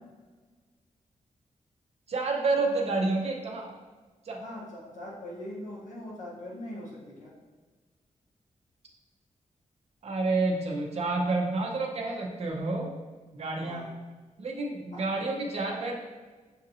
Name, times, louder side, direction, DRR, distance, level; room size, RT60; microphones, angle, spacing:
voice 1, 2.1-3.8 4.2-4.4 10.0-12.9 13.3-13.9 14.4-16.0, right 3 dB, 50° right, 0 dB, 0.7 m, -29 dB
voice 2, 4.3-7.3 13.6-13.9 14.9-15.1, left 1 dB, 70° left, -4 dB, 1.1 m, -41 dB
6.3 x 2.6 x 2.7 m, 1.4 s
wide cardioid pair, 160°, 14 cm